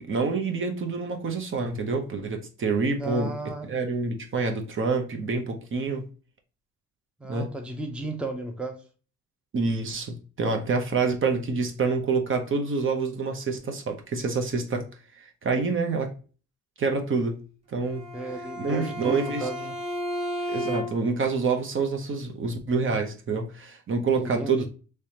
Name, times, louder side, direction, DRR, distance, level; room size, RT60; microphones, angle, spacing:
voice 1, 0.0-3.3 3.6-6.0 7.3-7.5 9.5-16.1 16.8-17.4 17.7-18.0 18.6-19.5 20.5-24.7, right 4 dB, 40° right, 0.8 m, -27 dB
voice 2, 3.0-3.7 7.2-8.8 18.1-19.7 24.2-24.7, right 2 dB, 5° right, 0.6 m, -34 dB
Bowed string instrument, 17.8-21.2, equal, 20° right, 1.6 m, -33 dB
3.3 x 3.2 x 2.8 m
cardioid pair, 90°, 30 cm